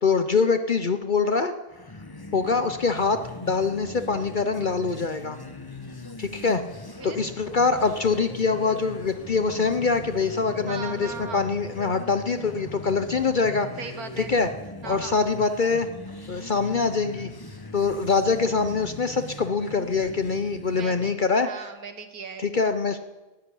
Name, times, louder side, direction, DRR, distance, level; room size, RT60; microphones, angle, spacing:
voice 1, 0.0-1.5 2.3-5.4 6.2-6.6 7.0-13.7 14.2-14.5 14.8-15.9 16.3-17.3 17.7-21.7 22.4-23.0, left 4 dB, 45° left, 9 dB, 0.7 m, -24 dB
sound 1, 1.7-21.2, left 2 dB, 20° left, 1.0 m, -41 dB
Bird, 6.9-13.4, left 5 dB, 75° left, 1.8 m, -46 dB
voice 2, 10.7-11.5 13.8-14.3 14.8-15.2 20.7-22.5, right 5 dB, 85° right, 8 dB, 1.9 m, -38 dB
14.0 x 10.0 x 9.9 m, 1.1 s
omnidirectional pair, 1.5 m